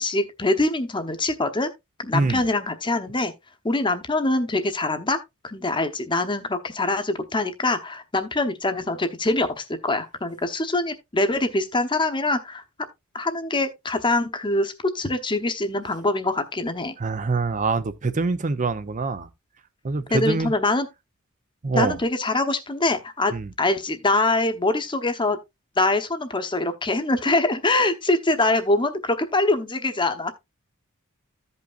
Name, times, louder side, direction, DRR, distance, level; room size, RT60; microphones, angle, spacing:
voice 1, 0.0-1.7 2.0-3.3 3.6-5.2 5.4-12.6 13.1-17.0 20.1-20.9 21.7-25.4 25.8-30.3, left 2 dB, 20° left, 0.9 m, -24 dB
voice 2, 17.0-19.3 19.8-20.5 21.6-22.0 23.3-23.5, right 3 dB, 35° right, 0.6 m, -24 dB
14.5 x 5.5 x 2.4 m
head